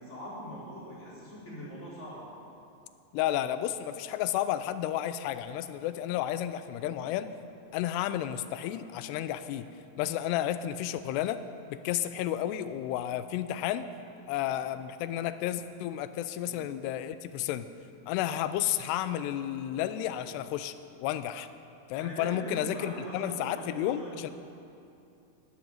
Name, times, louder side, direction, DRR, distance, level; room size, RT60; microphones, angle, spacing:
voice 1, 0.0-2.2 6.8-7.1 16.4-16.6 20.2-20.4 22.0-24.3, equal, 15° left, -8 dB, 4.5 m, -42 dB
voice 2, 3.1-7.3 7.7-9.7 10.0-11.4 11.7-13.9 14.3-17.7 18.1-20.7 21.0-21.5 21.9-24.3, left 12 dB, 90° left, 12 dB, 2.7 m, -32 dB
12.5 x 10.0 x 9.1 m, 2.6 s
omnidirectional pair, 4.7 m